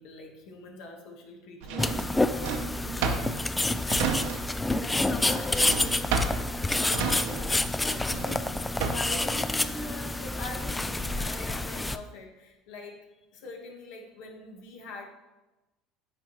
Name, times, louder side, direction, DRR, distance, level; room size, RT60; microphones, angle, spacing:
voice 1, 0.0-2.0 3.2-3.8 4.1-4.4 5.2-5.6 6.7-7.4 7.8-8.6 8.9-13.1 13.3-15.1, left 2 dB, 75° left, 2 dB, 1.4 m, -42 dB
Drawer open or close, 1.6-4.7 5.0-9.2, right 5 dB, 80° right, 0.8 m, -32 dB
sound 1, 1.8-12.0, left 2 dB, 10° left, 0.3 m, -28 dB
voice 2, 2.3-3.3 3.8-4.2 4.8-6.1 6.6-7.1 13.4-13.5, left 3 dB, 30° left, 7 dB, 0.8 m, -42 dB
9.1 x 4.5 x 3.1 m, 1.1 s
supercardioid pair, 110°, 0 cm